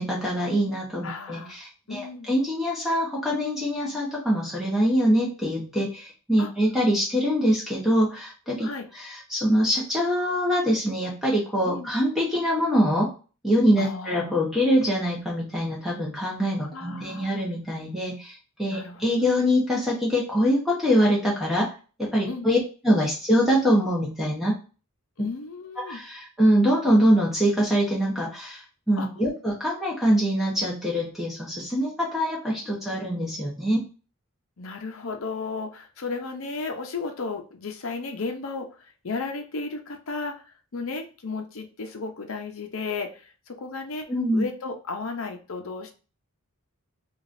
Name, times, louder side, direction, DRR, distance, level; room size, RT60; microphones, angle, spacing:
voice 1, 0.0-8.7 8.9-13.1 13.4-21.7 22.0-22.6 22.8-24.5 25.2-25.3 25.8-28.6 28.9-33.8 44.1-44.5, equal, ahead, -4 dB, 0.8 m, -24 dB
voice 2, 1.0-1.6 1.9-2.3 6.4-6.5 8.6-8.9 11.7-11.9 13.8-14.3 16.7-17.4 18.7-19.3 22.3-22.5 25.2-26.0 29.0-29.1 34.6-38.7 39.0-44.1 44.3-45.9, left 4 dB, 65° left, 5 dB, 0.6 m, -34 dB
4.8 x 2.4 x 2.6 m, 0.35 s
head